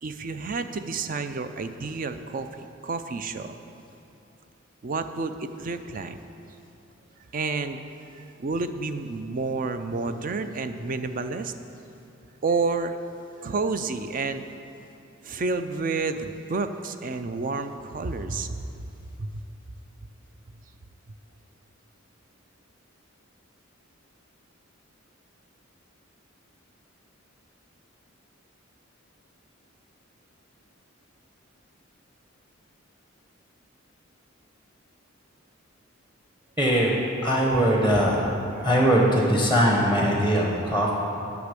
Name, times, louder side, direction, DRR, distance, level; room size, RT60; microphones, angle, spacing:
voice 1, 0.0-2.5 2.8-3.6 4.8-6.2 7.3-7.8 8.1-11.5 12.4-13.0 13.4-14.4 15.2-18.6 19.2-19.3 38.6-38.7, right 4 dB, 40° right, 9 dB, 0.4 m, -30 dB
voice 2, 36.6-36.9 37.2-38.3 38.6-40.9, equal, 10° right, -2 dB, 0.9 m, -21 dB
8.3 x 6.0 x 8.2 m, 2.7 s
head